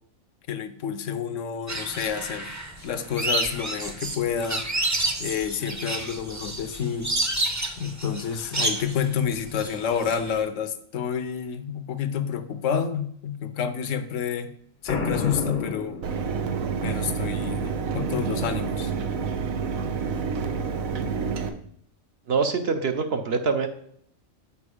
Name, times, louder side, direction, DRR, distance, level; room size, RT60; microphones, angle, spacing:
voice 1, 0.5-4.6 5.2-7.1 7.8-14.5 14.8-16.0 16.8-18.9, left 7 dB, 70° left, 10 dB, 1.0 m, -29 dB
sound 1, 1.7-10.4, right 2 dB, 15° right, 0.6 m, -30 dB
Boom, 14.9-16.7, left 4 dB, 45° left, 0.7 m, -30 dB
Mechanisms, 16.0-21.5, right 5 dB, 85° right, 1.2 m, -28 dB
voice 2, 22.3-23.7, right 5 dB, 55° right, 6 dB, 0.8 m, -24 dB
7.0 x 5.0 x 4.9 m, 0.66 s
omnidirectional pair, 1.4 m